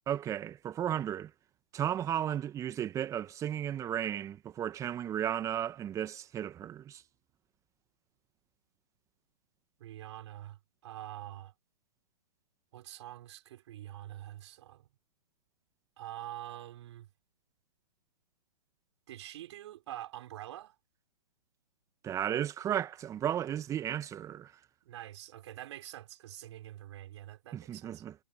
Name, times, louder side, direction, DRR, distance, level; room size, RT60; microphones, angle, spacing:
voice 1, 0.1-1.3 1.7-7.0 22.0-24.5 27.5-28.1, right 10 dB, 15° right, 1.7 m, -34 dB
voice 2, 9.8-11.5 12.7-14.9 16.0-17.1 19.1-20.7 24.8-28.0, right 13 dB, 45° right, 5.0 m, -45 dB
figure-of-eight pair, 130°, 20 cm